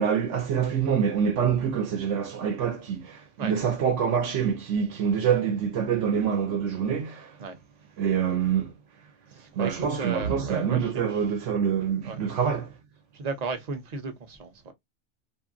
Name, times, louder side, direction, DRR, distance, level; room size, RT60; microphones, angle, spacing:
voice 1, 0.0-7.3 8.0-8.7 9.5-12.7, right 7 dB, 85° right, 1.0 m, -26 dB
voice 2, 9.3-11.3 12.0-12.5 13.1-14.7, right 4 dB, 40° right, 0.7 m, -35 dB
2.7 x 2.4 x 2.4 m
omnidirectional pair, 1.2 m